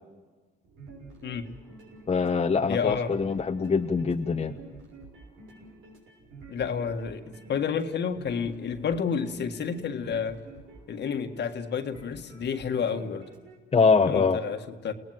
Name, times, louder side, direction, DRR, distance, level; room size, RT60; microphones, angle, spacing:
sound 1, 0.6-13.6, right 3 dB, 85° right, 6.6 m, -49 dB
voice 1, 2.1-4.5 13.7-14.4, left 5 dB, 30° left, 5 dB, 1.0 m, -23 dB
voice 2, 2.7-3.1 6.5-7.2 7.5-10.4 10.9-13.3 14.0-14.9, left 6 dB, 60° left, 7 dB, 1.7 m, -30 dB
29.5 x 18.5 x 7.7 m, 1.3 s
cardioid pair, 90°, 20 cm